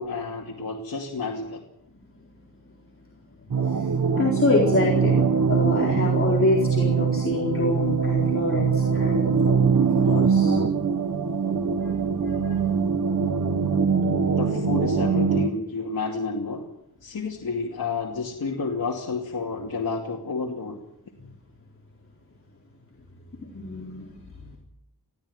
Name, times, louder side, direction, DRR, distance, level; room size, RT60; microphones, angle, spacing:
voice 1, 0.0-1.6 14.2-16.6 17.0-20.8, left 4 dB, 65° left, -1 dB, 2.6 m, -30 dB
sound 1, 3.5-15.5, right 6 dB, 55° right, 1.5 m, -22 dB
voice 2, 3.6-5.2 5.5-10.6 11.8-12.6 23.4-24.6, left 2 dB, 35° left, -2 dB, 4.2 m, -27 dB
21.5 x 15.0 x 9.5 m, 0.84 s
wide cardioid pair, 130°, 38 cm